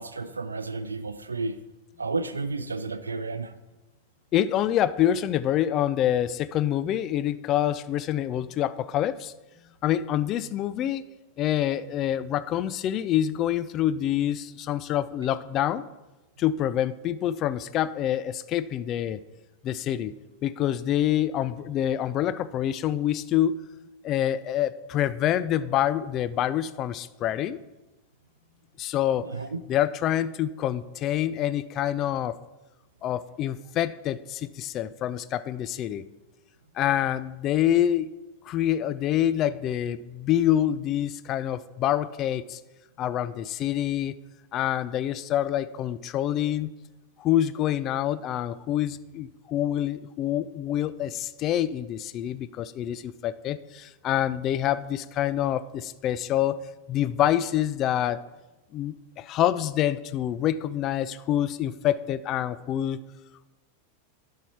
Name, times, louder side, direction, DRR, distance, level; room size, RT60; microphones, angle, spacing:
voice 1, 0.0-1.6 2.0-3.5 29.2-29.6, right 3 dB, 75° right, 11 dB, 0.4 m, -32 dB
voice 2, 4.3-9.3 9.8-11.1 11.4-15.9 16.4-19.2 19.6-20.1 20.4-23.6 24.0-27.6 28.8-29.3 29.7-32.4 33.0-36.0 36.8-38.1 38.4-42.6 43.0-44.2 44.5-46.7 47.2-56.6 56.9-58.2 58.7-63.0, left 11 dB, 35° left, 15 dB, 0.4 m, -26 dB
11.0 x 5.6 x 4.6 m, 1.1 s
figure-of-eight pair, 90°, 0 cm